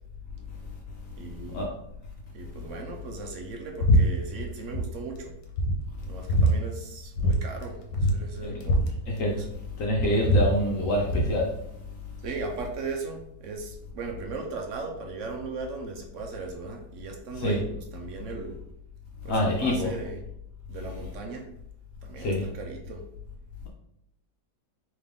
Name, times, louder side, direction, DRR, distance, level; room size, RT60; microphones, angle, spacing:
voice 1, 1.2-1.7 2.3-5.3 6.1-8.8 9.4-9.5 12.2-18.6 19.2-20.2 20.7-21.5 22.0-23.1, right 4 dB, 65° right, 3 dB, 0.8 m, -37 dB
sound 1, 3.8-4.0 4.3-4.8 5.2-5.3 5.6-6.5 7.2-7.4 7.6-7.7 7.9-9.6 9.9-11.3, equal, 80° left, 1.3 m, -23 dB
voice 2, 8.4-8.7 9.1-9.5 9.8-11.5 17.4-17.6 19.3-19.9 22.2-22.5, left 1 dB, 60° left, -1 dB, 0.9 m, -26 dB
3.6 x 3.2 x 3.5 m, 0.75 s
omnidirectional pair, 1.8 m